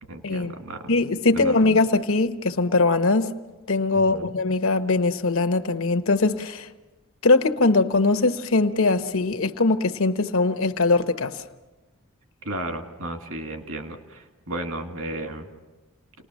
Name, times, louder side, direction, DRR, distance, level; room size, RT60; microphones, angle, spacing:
voice 1, 0.1-0.9 1.3-1.6 4.1-4.3 12.4-15.5, right 1 dB, 80° right, 2.4 m, -34 dB
voice 2, 0.9-3.3 3.7-6.7 7.2-11.4, left 3 dB, 80° left, 1.1 m, -21 dB
29.0 x 20.0 x 6.3 m
head